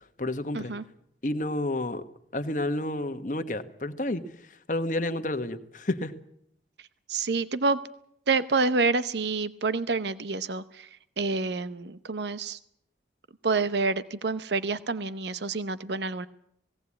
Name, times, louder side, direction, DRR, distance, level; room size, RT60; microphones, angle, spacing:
voice 1, 0.2-0.7 1.2-2.0 2.3-4.2 4.7-6.1, left 1 dB, 45° left, 9 dB, 1.3 m, -30 dB
voice 2, 7.1-7.8 8.3-10.9 11.2-12.6 13.4-16.3, right 3 dB, 75° right, 14 dB, 0.8 m, -28 dB
19.0 x 17.5 x 8.6 m, 0.71 s
head